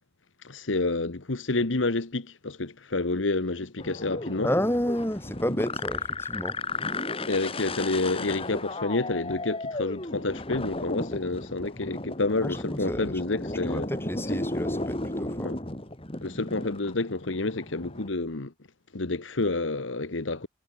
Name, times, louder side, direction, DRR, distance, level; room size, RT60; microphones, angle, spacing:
voice 1, 0.4-4.5 7.3-13.9 15.4-15.6 16.2-18.5 18.9-20.5, left 2 dB, 80° left, 1.3 m, -29 dB
sound 1, 3.8-18.1, left 2 dB, 30° left, 3.2 m, -34 dB
voice 2, 4.4-6.6 12.4-13.1 13.6-15.5, equal, 10° left, 6.8 m, -30 dB
head